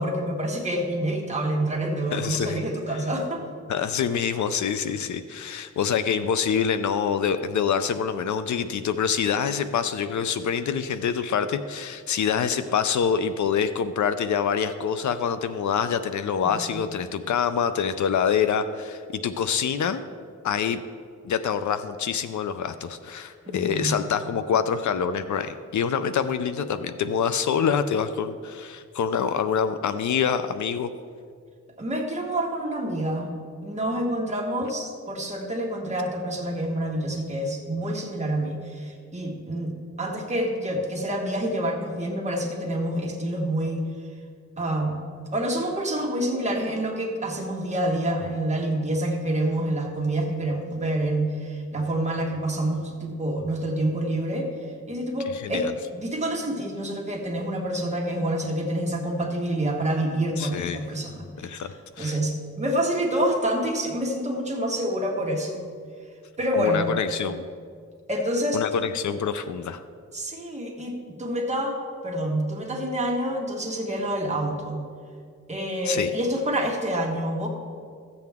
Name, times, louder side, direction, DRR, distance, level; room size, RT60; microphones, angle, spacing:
voice 1, 0.0-3.4 16.4-16.8 23.4-24.0 31.8-33.3 33.6-43.9 44.6-45.0 45.3-54.5 54.9-65.6 66.4-66.9 68.1-68.8 70.1-71.8 72.0-74.8 75.5-77.5, right 1 dB, 20° right, -1 dB, 1.5 m, -27 dB
voice 2, 2.1-2.6 2.9-3.0 3.7-20.0 20.4-20.8 21.2-30.9 55.3-55.7 60.4-60.8 61.4-61.7 62.0-62.2 66.6-67.5 68.5-69.8 75.9-76.1, left 7 dB, 70° left, 11 dB, 0.5 m, -26 dB
14.0 x 7.8 x 3.6 m, 2.1 s
wide cardioid pair, 135°, 31 cm